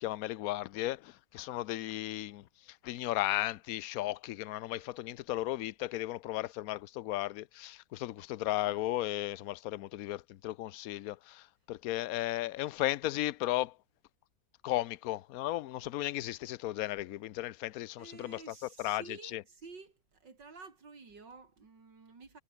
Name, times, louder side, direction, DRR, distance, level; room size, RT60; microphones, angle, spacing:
voice 1, 0.0-13.8 14.6-18.4 18.8-19.0 19.3-19.4, left 15 dB, 65° left, 1.0 m, -35 dB
voice 2, 18.0-22.4, right 4 dB, 80° right, 4.0 m, -51 dB
omnidirectional pair, 1.9 m